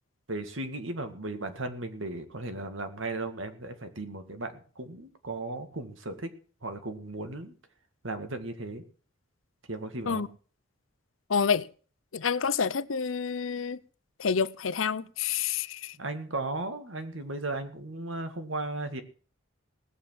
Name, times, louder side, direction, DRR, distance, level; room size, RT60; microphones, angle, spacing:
voice 1, 0.3-6.3 6.6-7.5 8.0-8.8 9.7-10.2 16.0-19.0, right 2 dB, 75° right, 2.0 m, -36 dB
voice 2, 11.3-11.6 12.1-13.8 14.2-15.9, left 6 dB, 80° left, 0.7 m, -28 dB
17.5 x 7.2 x 7.4 m
head